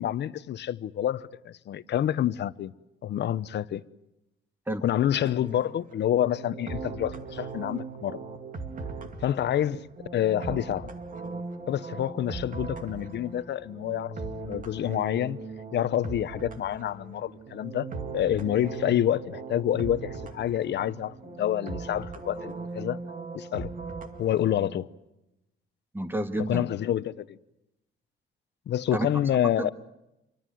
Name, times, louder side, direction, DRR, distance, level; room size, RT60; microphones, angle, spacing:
voice 1, 0.0-2.7 3.0-3.8 4.8-8.2 9.2-9.9 10.1-10.9 11.7-14.1 14.4-15.4 15.7-17.9 18.1-23.0 23.3-23.7 24.2-24.9 26.4-27.4 28.7-29.7, left 11 dB, 55° left, 0.9 m, -28 dB
sound 1, 5.1-24.8, right 4 dB, 40° right, 2.3 m, -39 dB
voice 2, 25.9-26.7 28.9-29.1 29.6-29.7, right 1 dB, 10° right, 1.8 m, -29 dB
27.5 x 24.0 x 7.8 m
cardioid pair, 155°, 21 cm